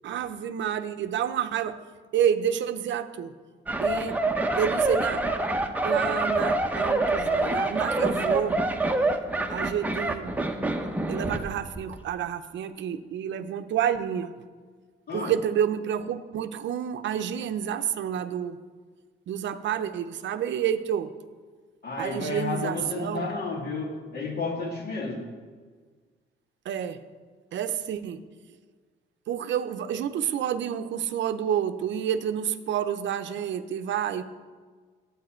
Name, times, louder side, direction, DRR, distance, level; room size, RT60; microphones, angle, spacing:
voice 1, 0.0-1.8 2.1-3.3 3.8-4.2 4.5-5.3 5.8-8.6 9.5-10.3 11.1-14.3 15.1-18.6 19.3-21.1 22.0-23.3 26.7-27.0 27.5-28.2 29.3-34.2, right 9 dB, 65° right, 10 dB, 0.6 m, -29 dB
sound 1, 3.7-11.5 11.7-12.0, right 2 dB, 10° right, 0.8 m, -26 dB
voice 2, 21.8-25.3, left 3 dB, 55° left, 1 dB, 2.0 m, -32 dB
10.0 x 8.3 x 4.4 m, 1.5 s
cardioid pair, 90°, 20 cm